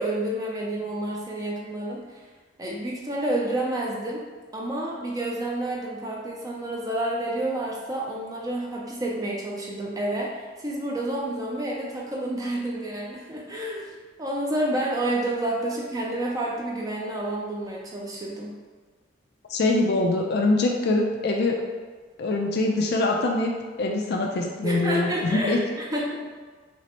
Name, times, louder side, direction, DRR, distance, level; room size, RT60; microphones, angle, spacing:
voice 1, 0.0-2.2 2.6-4.3 4.5-18.5 24.6-26.3, right 1 dB, 20° right, -2 dB, 0.4 m, -29 dB
voice 2, 19.5-21.6 22.2-23.5 23.8-25.6, left 2 dB, 60° left, 1 dB, 0.4 m, -23 dB
5.9 x 2.1 x 2.9 m, 1.4 s
head